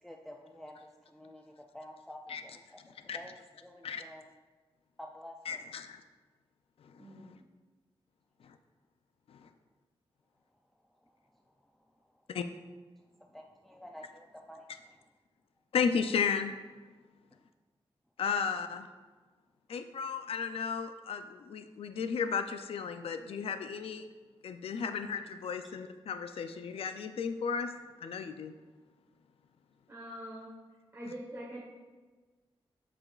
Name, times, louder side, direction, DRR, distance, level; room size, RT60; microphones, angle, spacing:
voice 1, 0.0-4.3 5.0-5.6 11.0-11.2 13.2-15.0, equal, ahead, 1 dB, 0.3 m, -50 dB
voice 2, 5.5-6.0 7.0-7.1 9.4-9.5 12.3-12.5 15.7-16.5 18.2-18.9 19.7-24.1 24.4-27.7 28.0-28.5, left 6 dB, 70° left, 9 dB, 0.4 m, -34 dB
voice 3, 7.0-7.4 29.9-30.5 30.9-31.6, equal, 25° right, -6 dB, 1.1 m, -44 dB
7.7 x 6.1 x 2.4 m, 1.3 s
wide cardioid pair, 135°, 10 cm